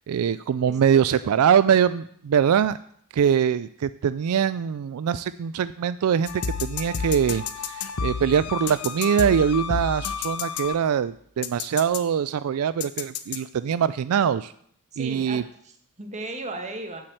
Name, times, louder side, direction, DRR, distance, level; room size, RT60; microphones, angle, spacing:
voice 1, 0.1-2.8 3.1-6.3 6.6-14.5 15.0-15.4, right 8 dB, 75° right, 15 dB, 0.3 m, -23 dB
voice 2, 0.7-1.3 14.9-17.0, right 2 dB, 30° right, 5 dB, 1.6 m, -37 dB
sound 1, 6.3-11.1 11.4-12.0 12.8-13.4, left 6 dB, 85° left, 0.9 m, -31 dB
8.5 x 7.6 x 7.9 m, 0.66 s
head